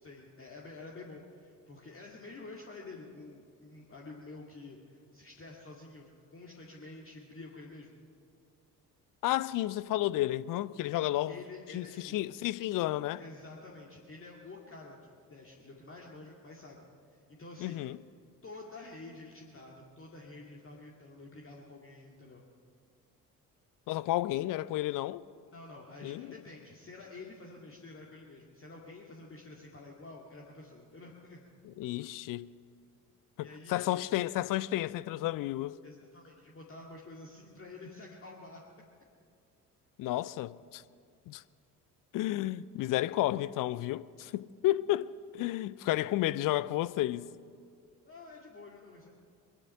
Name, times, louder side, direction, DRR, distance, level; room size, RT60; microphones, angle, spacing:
voice 1, 0.0-8.0 10.8-12.2 13.2-16.8 17.1-17.9 18.4-22.4 25.5-31.4 33.4-34.1 35.8-38.6 48.1-49.1, left 3 dB, 25° left, 2.1 m, -49 dB
voice 2, 9.2-11.4 11.7-13.2 17.6-18.0 23.9-25.2 26.0-26.3 31.6-32.5 33.4-35.8 40.0-40.8 41.3-41.4 42.1-45.1 45.3-47.3, left 15 dB, 45° left, 0.5 m, -32 dB
22.5 x 11.0 x 5.6 m
figure-of-eight pair, 50°, 48 cm